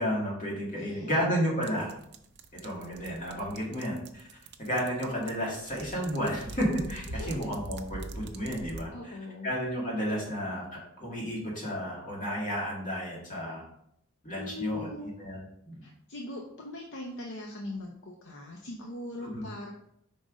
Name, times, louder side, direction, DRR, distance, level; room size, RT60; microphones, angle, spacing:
voice 1, 0.0-1.9 2.6-4.2 4.6-9.2 9.4-10.7 11.0-13.6 14.2-14.9 15.2-15.4 15.6-15.8 19.2-19.4, equal, 40° left, -4 dB, 2.2 m, -32 dB
voice 2, 0.8-1.1 7.1-7.5 8.9-9.5 14.3-15.1 15.8-19.7, left 2 dB, 60° left, 0 dB, 0.7 m, -41 dB
sound 1, 1.6-8.8, right 2 dB, 50° right, 0.5 m, -43 dB
5.2 x 3.9 x 5.0 m, 0.73 s
head